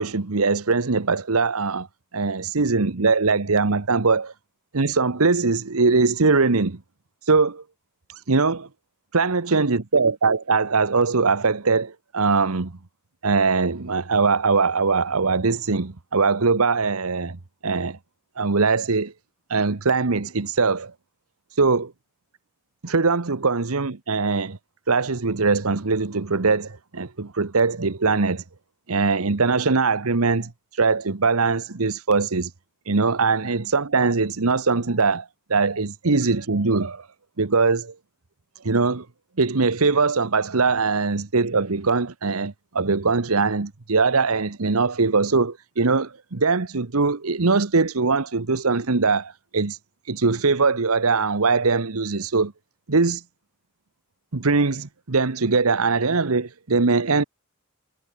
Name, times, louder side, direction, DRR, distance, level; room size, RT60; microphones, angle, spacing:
voice 1, 0.0-1.9 2.1-4.3 4.7-6.8 7.3-7.6 8.3-8.7 9.1-12.7 13.2-18.0 18.4-19.1 19.5-20.9 21.6-21.9 22.8-24.6 24.9-28.4 28.9-30.5 30.8-32.5 32.9-37.0 37.4-37.9 38.6-39.0 39.4-49.8 50.1-52.5 52.9-53.2 54.3-57.2, right 4 dB, 85° right, 1.2 m, -21 dB
head